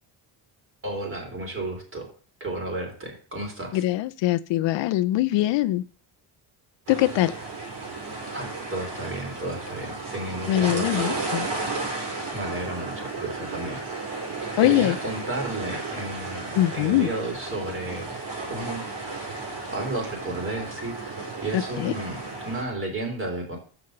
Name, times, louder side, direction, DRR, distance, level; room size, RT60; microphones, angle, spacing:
voice 1, 0.8-2.1 2.4-3.8 8.3-11.3 12.3-13.8 14.6-18.1 18.5-18.9 19.7-23.6, right 2 dB, 25° right, 1 dB, 3.3 m, -33 dB
voice 2, 3.7-5.8 6.9-7.3 10.5-11.5 14.6-15.0 16.5-17.1 21.5-21.9, left 15 dB, 70° left, 13 dB, 0.5 m, -22 dB
sound 1, 6.9-22.6, right 3 dB, 65° right, 4.9 m, -33 dB
7.0 x 5.8 x 6.4 m, 0.42 s
cardioid pair, 135°, 47 cm